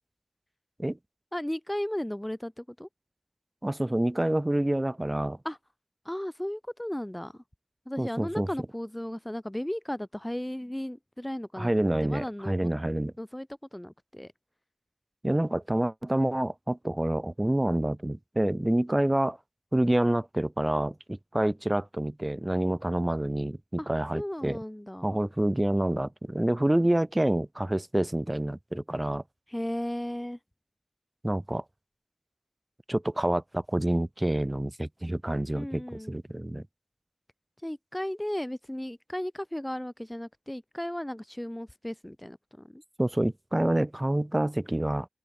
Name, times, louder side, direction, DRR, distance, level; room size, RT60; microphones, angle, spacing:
voice 1, 1.3-2.9 5.4-5.6 6.0-7.4 7.9-12.7 13.2-14.3 23.8-25.3 29.5-30.4 35.5-36.2 37.6-42.8, left 1 dB, 15° left, 0.4 m, -35 dB
voice 2, 3.6-5.4 8.0-8.5 11.6-13.1 15.2-19.4 19.7-24.6 25.0-29.2 31.2-31.6 32.9-36.7 43.0-45.1, right 1 dB, 25° right, 0.7 m, -27 dB
open air
wide cardioid pair, 55°, 0 cm